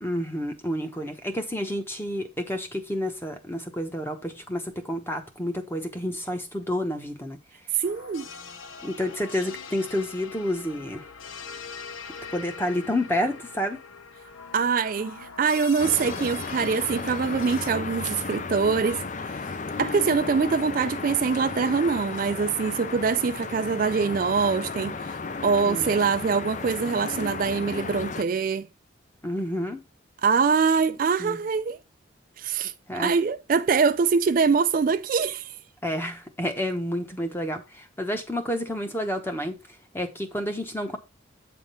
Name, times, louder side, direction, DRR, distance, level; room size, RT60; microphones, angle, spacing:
voice 1, 0.0-7.4 8.8-11.1 12.3-13.8 25.7-25.9 29.2-29.8 31.2-31.4 32.9-33.1 35.8-39.6 39.9-41.0, left 1 dB, 10° left, 1.0 m, -29 dB
voice 2, 7.7-8.3 14.5-19.0 19.8-25.2 25.4-28.7 30.2-31.8 32.4-35.5, right 5 dB, 45° right, 0.3 m, -24 dB
sound 1, 7.8-17.7, left 5 dB, 90° left, 0.7 m, -42 dB
sound 2, 15.8-28.2, left 4 dB, 40° left, 0.5 m, -34 dB
8.2 x 3.6 x 5.6 m
head